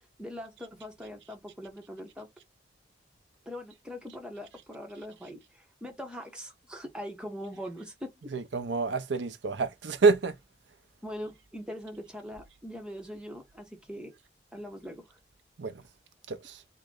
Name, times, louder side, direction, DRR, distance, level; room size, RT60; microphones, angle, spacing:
voice 1, 0.2-2.3 3.5-8.1 11.0-14.1 14.5-15.2, equal, 5° right, 0.8 m, -42 dB
voice 2, 8.3-10.4 15.6-15.7 16.3-16.6, right 4 dB, 85° right, 0.6 m, -27 dB
3.7 x 2.2 x 3.6 m
head